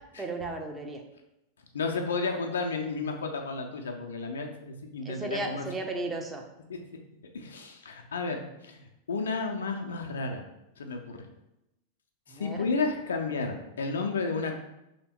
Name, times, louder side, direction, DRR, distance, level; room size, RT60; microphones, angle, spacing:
voice 1, 0.2-1.0 5.0-6.4 12.3-12.7, right 2 dB, 15° right, 2 dB, 0.6 m, -35 dB
voice 2, 1.7-5.7 6.7-6.8 7.3-10.4 10.8-11.2 12.3-14.6, left 4 dB, 65° left, 3 dB, 0.5 m, -32 dB
3.4 x 2.8 x 4.3 m, 0.89 s
figure-of-eight pair, 90°, 0 cm